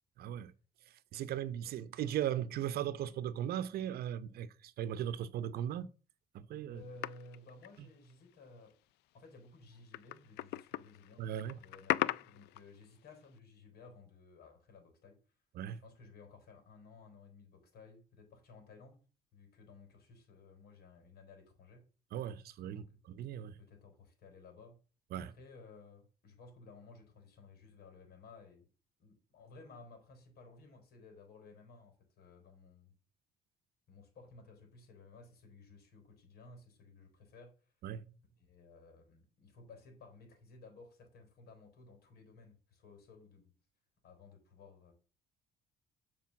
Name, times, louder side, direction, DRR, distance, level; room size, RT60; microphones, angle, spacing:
voice 1, 0.2-0.5 1.1-5.9 6.3-6.8 7.8-7.9 11.2-11.6 15.5-15.8 22.1-23.6 25.1-25.3 37.8-38.0, right 10 dB, 65° right, 0.8 m, -38 dB
voice 2, 6.7-8.7 9.1-15.2 15.7-19.0 19.3-21.8 22.7-22.8 23.6-24.8 25.2-28.7 29.0-32.9 33.9-37.5 38.4-43.5 44.0-44.9, left 3 dB, 65° left, 4.1 m, -56 dB
sound 1, 7.0-8.3 8.7-8.8 9.7-12.8 13.2-13.3, left 17 dB, 85° left, 0.4 m, -38 dB
7.5 x 5.0 x 7.0 m
cardioid pair, 110°, 17 cm